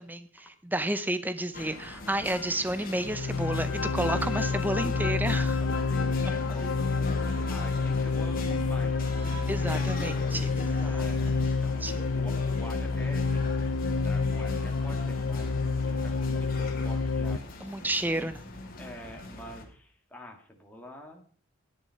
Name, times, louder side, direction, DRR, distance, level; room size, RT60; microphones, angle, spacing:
voice 1, 0.0-5.6 9.5-11.1 11.8-11.9 17.6-18.4, right 1 dB, 10° right, 11 dB, 0.7 m, -31 dB
sound 1, 1.5-19.6, left 2 dB, 40° left, 2.4 m, -40 dB
sound 2, 3.0-17.4, left 4 dB, 75° left, 0.7 m, -28 dB
voice 2, 5.6-9.1 10.8-13.7 14.0-17.8 18.1-18.3 18.8-21.2, left 1 dB, 10° left, 1 dB, 1.8 m, -47 dB
10.5 x 10.0 x 5.7 m, 0.43 s
head